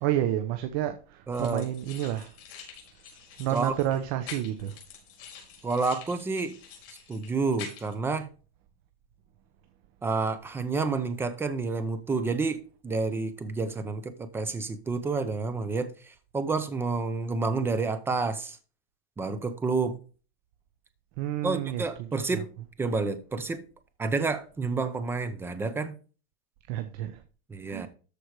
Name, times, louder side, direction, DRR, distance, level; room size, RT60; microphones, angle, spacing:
voice 1, 0.0-2.3 3.4-4.8 21.2-22.4 26.7-27.2 27.7-27.9, right 12 dB, 40° right, 0.9 m, -30 dB
sound 1, 1.3-8.0, left 7 dB, 60° left, 4.9 m, -46 dB
voice 2, 1.3-1.7 3.5-3.7 5.6-6.6 7.1-8.3 10.0-18.6 19.2-20.0 21.4-22.5 22.8-23.6 24.0-25.9 27.5-27.9, right 4 dB, 5° right, 0.6 m, -29 dB
13.5 x 4.7 x 4.7 m
supercardioid pair, 160°, 32 cm